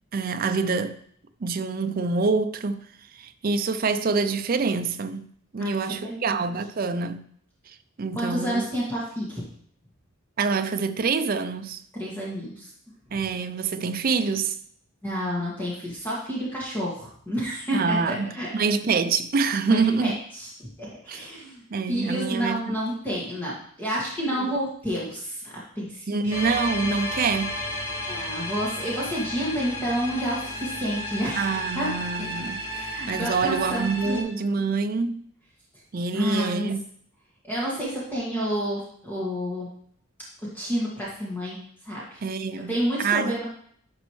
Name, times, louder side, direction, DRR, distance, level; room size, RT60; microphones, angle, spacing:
voice 1, 0.1-1.0 1.4-2.8 3.1-5.3 5.5-7.2 8.0-8.6 10.4-11.8 13.1-14.6 17.7-20.2 21.1-21.3 21.7-22.8 26.1-27.6 31.3-32.7 33.1-35.2 35.9-36.8 42.2-42.7 43.0-43.4, right 4 dB, 45° right, 0.4 m, -26 dB
voice 2, 5.6-6.4 8.1-9.4 12.0-12.7 15.0-18.5 19.7-26.4 28.1-32.3 32.6-34.2 36.1-36.7 37.4-39.7 40.5-41.6 41.9-42.2 42.7-43.5, equal, 10° left, 1.9 m, -30 dB
sound 1, 26.3-34.2, left 1 dB, 90° left, 2.2 m, -33 dB
10.5 x 5.2 x 3.2 m
head